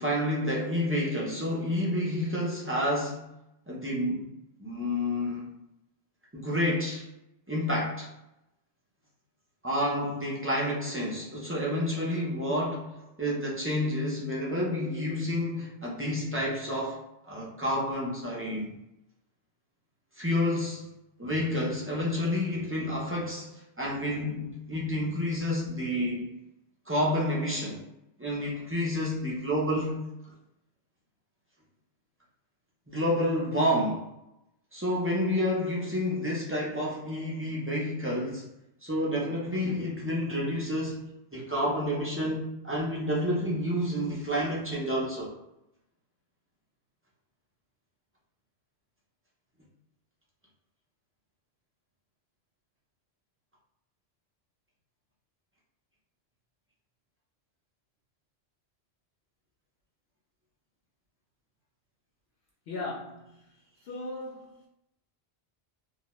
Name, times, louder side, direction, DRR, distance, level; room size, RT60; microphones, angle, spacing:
voice 1, 0.0-3.3 3.7-4.3 4.6-5.5 6.3-7.1 7.5-8.1 9.6-18.7 20.2-20.9 21.2-26.3 26.9-27.8 28.2-30.0 32.9-34.1 34.7-38.5 38.8-41.0 41.3-45.4, left 1 dB, 20° right, 0.4 m, -29 dB
voice 2, 62.7-63.4 63.8-64.7, left 2 dB, 70° left, 0.8 m, -38 dB
2.3 x 2.1 x 2.9 m
omnidirectional pair, 1.1 m